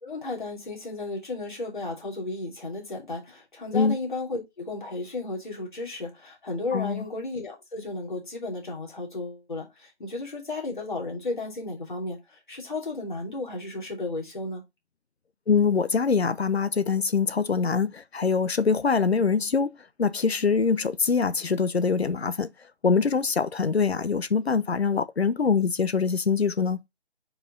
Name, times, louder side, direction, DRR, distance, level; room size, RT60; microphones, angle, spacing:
voice 1, 0.0-14.6, left 2 dB, 45° left, 3.0 m, -34 dB
voice 2, 6.7-7.0 15.5-19.7 20.0-22.5 22.8-26.8, left 5 dB, 65° left, 0.9 m, -24 dB
5.5 x 4.9 x 3.7 m
figure-of-eight pair, 175°, 34 cm